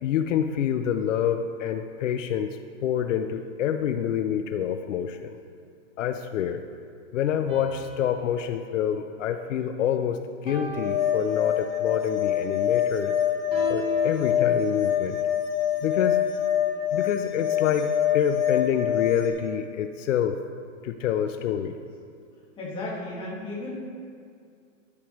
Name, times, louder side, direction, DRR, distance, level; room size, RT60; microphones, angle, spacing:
voice 1, 0.0-5.4 6.0-6.6 7.1-13.1 13.7-15.2 15.8-16.2 16.9-20.4 20.8-21.8, left 9 dB, 75° left, 8 dB, 0.6 m, -27 dB
sound 1, 7.5-9.9 10.5-11.9 13.5-15.2, right 2 dB, 15° right, 1.1 m, -38 dB
sound 2, 10.7-19.3, left 9 dB, 35° left, 1.9 m, -25 dB
voice 2, 22.6-23.7, left 2 dB, 15° left, -6 dB, 1.7 m, -34 dB
13.0 x 4.9 x 3.1 m, 2.2 s
hypercardioid pair, 155°, 38 cm